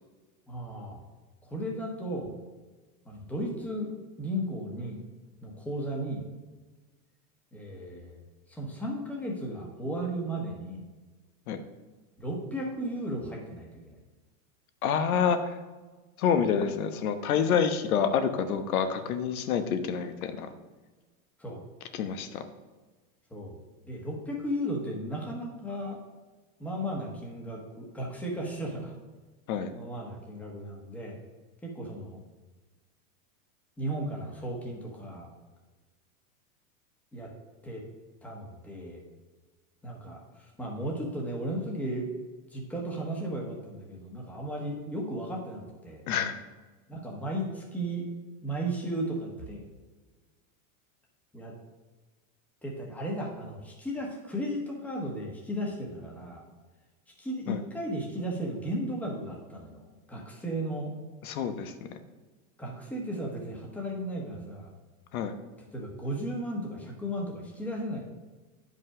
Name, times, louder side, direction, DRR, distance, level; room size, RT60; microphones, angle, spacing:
voice 1, 0.5-1.0 1.5-2.3 3.0-3.9 4.2-5.0 5.4-6.3 7.5-8.2 8.5-10.8 12.2-14.0 21.4-21.6 23.3-26.0 26.6-28.9 29.7-31.2 31.6-32.2 33.8-35.3 37.1-37.3 37.6-37.8 38.2-39.0 39.8-40.2 40.6-42.1 42.5-46.0 46.9-48.1 48.4-49.6 51.3-51.5 52.6-56.4 57.2-59.8 60.1-60.9 62.6-64.7 65.7-68.0, right 1 dB, 5° left, -1 dB, 1.2 m, -35 dB
voice 2, 14.8-15.6 16.2-20.5 21.9-22.4 29.5-29.7 46.1-46.3 57.5-57.6 61.2-61.7 65.1-65.3, left 7 dB, 75° left, 9 dB, 1.1 m, -27 dB
9.5 x 5.4 x 4.9 m, 1.3 s
supercardioid pair, 160°, 43 cm